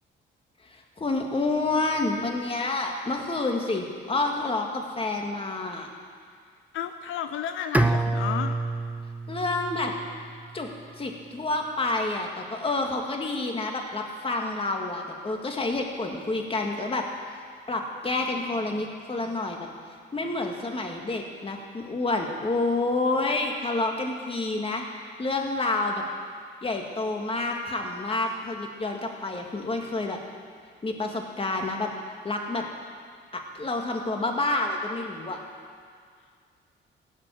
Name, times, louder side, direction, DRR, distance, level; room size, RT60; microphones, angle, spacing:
voice 1, 0.7-5.9 9.3-9.9 10.5-10.7 11.0-17.0 17.7-19.7 20.1-24.8 25.2-26.0 26.6-30.2 30.8-31.9 32.2-32.7 33.3-35.4, left 2 dB, 30° left, 2 dB, 2.0 m, -28 dB
voice 2, 6.7-8.6, left 9 dB, 85° left, 8 dB, 0.6 m, -32 dB
Bowed string instrument, 7.7-10.8, right 2 dB, 5° right, 0.6 m, -28 dB
16.5 x 5.9 x 9.2 m, 2.1 s
cardioid pair, 90°, 20 cm